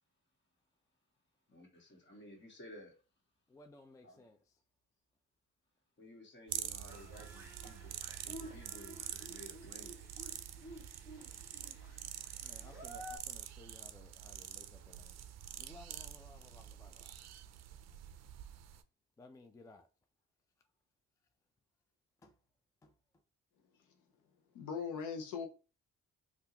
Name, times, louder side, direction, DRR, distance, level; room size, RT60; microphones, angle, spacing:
voice 1, 1.5-3.0 4.0-4.3 6.0-10.2, equal, 40° left, 1.7 m, -55 dB
voice 2, 3.5-4.4 11.9-12.0 12.4-15.3 15.5-17.1 19.2-19.9 22.2-22.3 22.8-22.9, left 2 dB, 10° left, 0.3 m, -58 dB
sound 1, 6.5-18.8, right 11 dB, 60° right, 0.4 m, -46 dB
sound 2, 6.9-13.2, equal, 10° right, 1.4 m, -52 dB
voice 3, 24.5-25.5, left 6 dB, 85° left, 0.6 m, -39 dB
3.5 x 2.4 x 2.8 m
cardioid pair, 90°, 30 cm